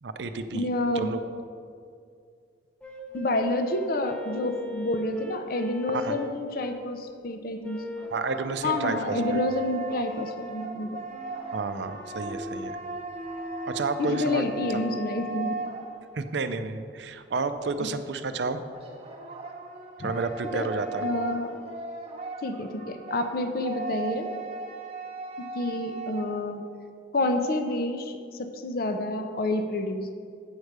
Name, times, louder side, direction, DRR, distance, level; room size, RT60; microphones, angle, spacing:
voice 1, 0.0-0.7 0.9-1.2 5.9-6.1 8.1-9.4 11.5-12.8 13.6-14.5 16.2-18.6 20.0-21.0, right 4 dB, 70° right, 9 dB, 0.5 m, -31 dB
voice 2, 0.5-1.1 3.1-7.8 8.6-11.0 14.0-15.6 20.0-20.1 20.5-20.7 21.0-21.6 22.4-24.3 25.5-26.6 27.1-30.1, left 2 dB, 50° left, 7 dB, 0.6 m, -29 dB
sound 1, 2.8-7.0 7.6-8.2 9.8-10.5 11.1-15.0, left 1 dB, 5° left, 0.5 m, -40 dB
sound 2, 7.7-16.4 18.7-26.5, right 3 dB, 35° right, 0.9 m, -37 dB
8.9 x 4.7 x 6.6 m, 2.3 s
head